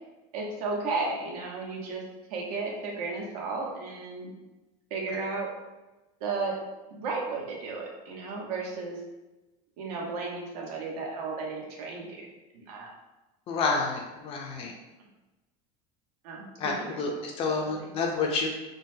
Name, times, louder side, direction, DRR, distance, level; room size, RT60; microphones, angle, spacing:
voice 1, 0.3-2.0 2.3-4.3 4.9-5.5 6.2-6.6 6.9-9.0 9.8-12.3 12.5-12.9 16.2-17.2 17.5-17.9, right 3 dB, 90° right, -1 dB, 0.9 m, -34 dB
voice 2, 13.5-14.7 16.6-18.5, left 4 dB, 30° left, 1 dB, 0.4 m, -29 dB
3.8 x 2.1 x 2.6 m, 1.1 s
cardioid pair, 165°, 19 cm